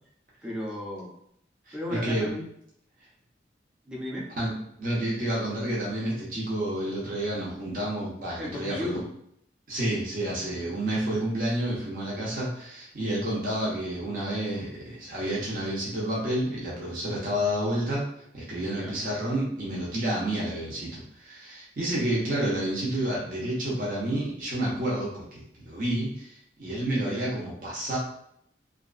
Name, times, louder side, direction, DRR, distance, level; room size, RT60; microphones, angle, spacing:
voice 1, 0.4-1.1 1.7-2.4 3.8-4.3 8.4-9.1 18.7-18.9 27.0-27.4, left 1 dB, 5° right, -4 dB, 0.5 m, -35 dB
voice 2, 1.7-2.3 4.4-4.5 4.8-9.0 9.7-18.1 18.3-28.0, right 1 dB, 50° right, -6 dB, 0.8 m, -30 dB
2.7 x 2.3 x 2.4 m, 0.72 s
head